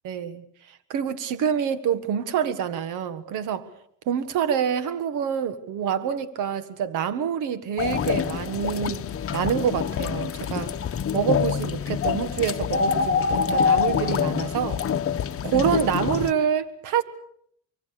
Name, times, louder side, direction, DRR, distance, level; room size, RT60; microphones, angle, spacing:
voice 1, 0.0-0.4 0.9-3.7 4.1-9.0 9.3-10.7 11.1-14.8 15.4-17.0, right 8 dB, 90° right, 1.7 m, -26 dB
sound 1, 7.8-16.3, left 7 dB, 50° left, 1.1 m, -25 dB
25.5 x 23.0 x 6.7 m
cardioid pair, 90°, 30 cm